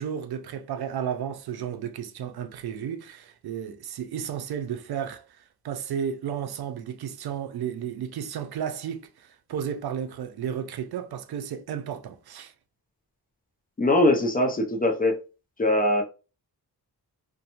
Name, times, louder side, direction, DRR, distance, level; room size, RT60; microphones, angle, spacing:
voice 1, 0.0-12.5, right 8 dB, 75° right, 0.5 m, -33 dB
voice 2, 13.8-15.2 15.6-16.0, left 1 dB, 25° left, 0.4 m, -21 dB
2.6 x 2.1 x 2.8 m
wide cardioid pair, 130°, 38 cm